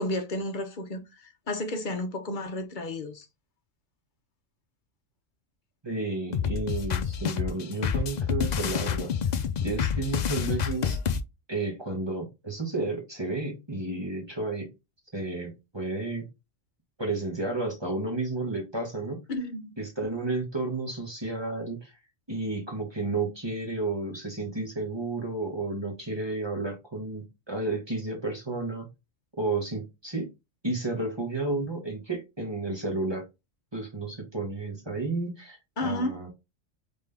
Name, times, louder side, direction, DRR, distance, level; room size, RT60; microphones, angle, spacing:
voice 1, 0.0-3.3 19.3-19.7 35.8-36.2, left 1 dB, 45° left, 0.9 m, -32 dB
voice 2, 5.8-9.1 9.6-11.0 11.5-14.7 15.1-16.2 17.0-19.2 19.8-21.9 22.3-28.9 29.4-30.3 30.6-33.2 33.7-36.3, right 2 dB, 20° right, 1.2 m, -32 dB
sound 1, 6.3-11.2, left 7 dB, 75° left, 0.4 m, -28 dB
3.7 x 3.7 x 3.4 m
omnidirectional pair, 1.3 m